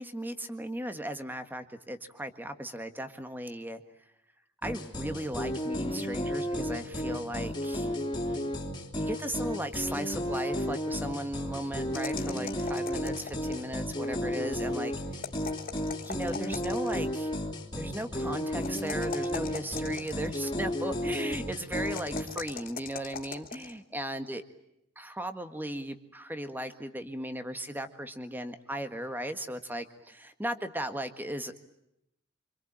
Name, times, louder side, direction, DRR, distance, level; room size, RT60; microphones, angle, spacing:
voice 1, 0.0-3.8 4.6-7.9 9.0-14.9 16.0-17.3 17.8-24.4 24.9-31.6, right 1 dB, 10° right, 8 dB, 1.7 m, -37 dB
sound 1, 4.6-22.2, equal, 20° left, 3.3 m, -33 dB
sound 2, 11.9-13.7 15.1-17.0 18.6-20.5 21.8-23.7, left 6 dB, 45° left, 2.9 m, -41 dB
26.5 x 25.0 x 8.8 m, 0.81 s
head